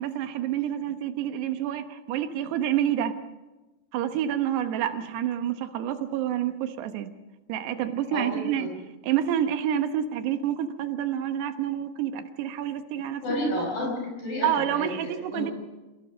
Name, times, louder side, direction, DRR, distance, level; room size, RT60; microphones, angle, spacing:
voice 1, 0.0-3.2 3.9-7.1 7.5-8.7 9.0-13.2 14.4-15.5, right 10 dB, 85° right, 8 dB, 3.3 m, -28 dB
voice 2, 8.1-8.8 13.2-15.5, left 1 dB, 55° left, 0 dB, 6.8 m, -31 dB
27.5 x 16.0 x 6.3 m, 1.1 s
omnidirectional pair, 4.7 m